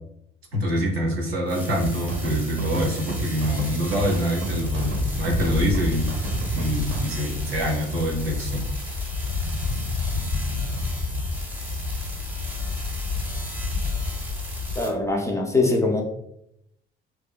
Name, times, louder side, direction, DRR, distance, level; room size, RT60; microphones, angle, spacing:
voice 1, 0.5-6.1 6.5-8.6, equal, 85° right, 1 dB, 0.5 m, -25 dB
sound 1, 1.5-14.9, right 1 dB, 5° right, 0.7 m, -38 dB
sound 2, 1.7-7.1, right 2 dB, 40° right, 0.6 m, -31 dB
sound 3, 4.6-14.8, left 4 dB, 75° left, 0.7 m, -29 dB
voice 2, 14.8-16.0, left 2 dB, 10° left, 1 dB, 0.4 m, -22 dB
2.7 x 2.3 x 2.2 m, 0.77 s
figure-of-eight pair, 50°, 30 cm